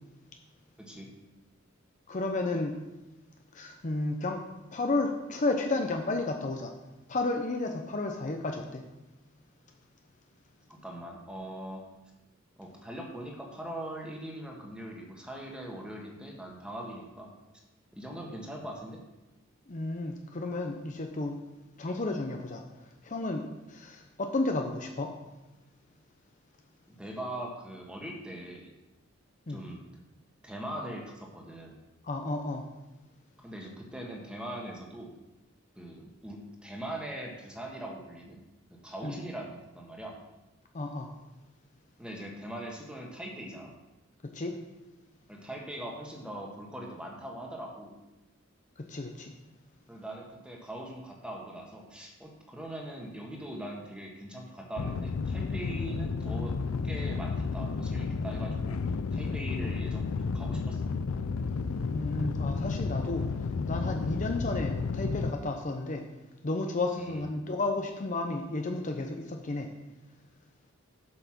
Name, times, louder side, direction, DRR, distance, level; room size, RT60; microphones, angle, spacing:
voice 1, 0.8-1.1 10.7-11.9 12.6-17.3 17.9-19.0 26.9-28.7 29.5-29.8 30.4-31.8 33.4-35.1 35.7-38.4 38.8-40.2 42.0-43.7 45.3-47.9 49.9-60.9 67.0-67.3, right 1 dB, 5° right, -1 dB, 1.5 m, -41 dB
voice 2, 2.1-2.8 3.5-4.4 4.7-6.7 7.1-8.8 19.7-21.4 21.8-22.6 23.0-25.1 29.5-29.6 32.0-32.6 39.0-39.1 40.7-41.1 44.3-44.6 48.9-49.3 61.9-63.3 63.7-66.0 66.4-69.7, left 2 dB, 40° left, 3 dB, 0.7 m, -32 dB
sound 1, 54.8-65.3, left 4 dB, 90° left, 0.4 m, -32 dB
7.7 x 5.7 x 6.0 m, 1.0 s
head